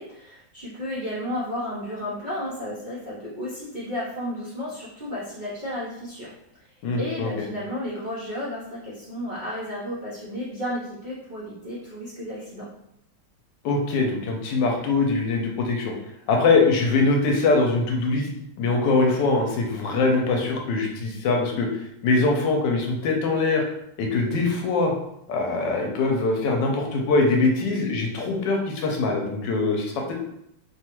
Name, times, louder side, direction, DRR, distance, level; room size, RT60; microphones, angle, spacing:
voice 1, 0.0-6.3 6.6-6.7 7.0-12.6, left 1 dB, 90° right, -9 dB, 0.4 m, -33 dB
voice 2, 6.8-7.3 13.6-15.9 16.3-18.3 18.6-23.6 24.0-24.9 25.3-30.1, left 3 dB, 75° left, 1 dB, 1.2 m, -22 dB
3.1 x 2.3 x 2.9 m, 0.78 s
omnidirectional pair, 2.1 m